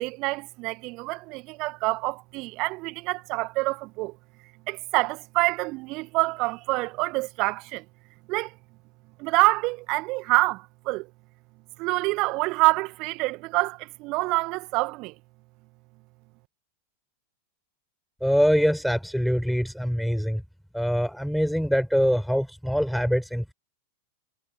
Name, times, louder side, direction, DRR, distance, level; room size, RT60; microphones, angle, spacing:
voice 1, 0.0-4.2 4.7-7.8 8.3-8.5 9.2-11.1 11.8-15.1, right 24 dB, 40° right, 1.9 m, -26 dB
voice 2, 18.2-20.4 20.7-23.5, equal, ahead, 4.8 m, -24 dB
figure-of-eight pair, 90°, 0 cm